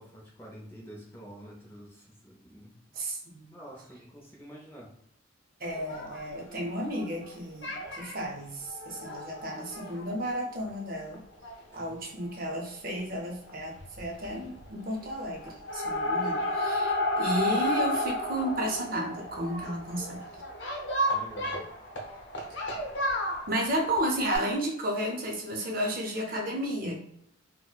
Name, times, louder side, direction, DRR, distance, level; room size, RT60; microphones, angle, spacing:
voice 1, 0.0-2.8 3.5-4.9 11.7-11.9 21.1-21.5, equal, 10° left, -3 dB, 0.5 m, -48 dB
voice 2, 2.9-3.5 5.6-11.2 11.7-20.2 23.5-26.9, equal, 45° right, 0 dB, 0.6 m, -33 dB
sound 1, 5.7-7.3 7.6-8.1 8.6-10.7 11.1-11.2 11.4-11.5 11.8-11.9 13.3-13.5 13.8-14.3 14.5-15.1 15.4-24.4, left 1 dB, 65° left, 0.7 m, -32 dB
4.0 x 2.1 x 2.3 m, 0.74 s
head